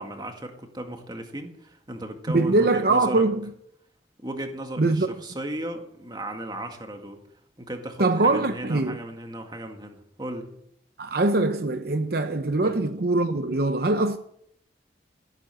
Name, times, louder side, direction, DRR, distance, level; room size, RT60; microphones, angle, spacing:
voice 1, 0.0-3.2 4.2-7.2 7.6-10.5 12.6-12.8, right 1 dB, 25° right, 2.0 m, -36 dB
voice 2, 2.3-3.4 4.8-5.1 8.0-9.0 11.0-14.2, right 2 dB, 60° right, 0.8 m, -22 dB
16.0 x 8.9 x 7.7 m
head